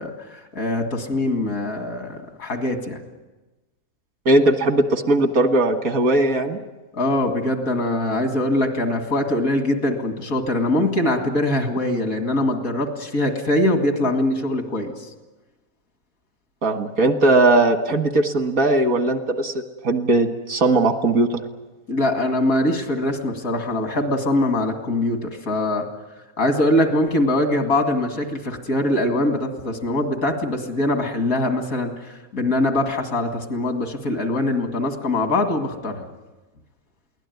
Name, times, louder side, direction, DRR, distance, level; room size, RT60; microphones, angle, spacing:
voice 1, 0.0-3.0 6.9-14.9 21.9-25.9 26.4-36.1, left 1 dB, 75° left, 5 dB, 2.7 m, -22 dB
voice 2, 4.3-6.6 16.6-19.5 19.8-21.4, right 2 dB, 80° right, 7 dB, 2.1 m, -18 dB
23.0 x 17.5 x 9.4 m, 1.2 s
omnidirectional pair, 1.5 m